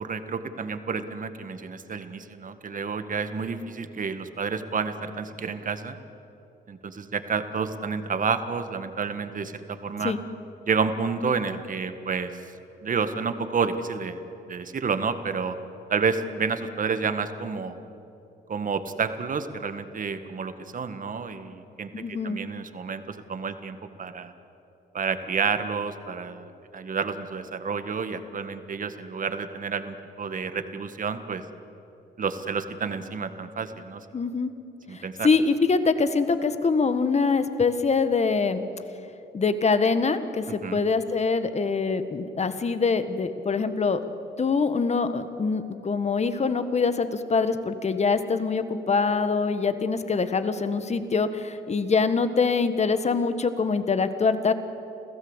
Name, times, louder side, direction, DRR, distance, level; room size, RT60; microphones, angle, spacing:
voice 1, 0.0-6.0 6.7-10.1 10.7-12.3 12.8-15.6 15.9-17.8 18.5-24.3 24.9-31.4 32.2-34.0 34.9-35.3 40.6-40.8, right 5 dB, 40° right, 9 dB, 1.6 m, -30 dB
voice 2, 21.9-22.4 34.1-34.5 34.9-38.6 39.3-44.0 44.4-54.5, left 4 dB, 35° left, 10 dB, 1.6 m, -24 dB
27.5 x 15.5 x 8.1 m, 2.8 s
cardioid pair, 90°, 20 cm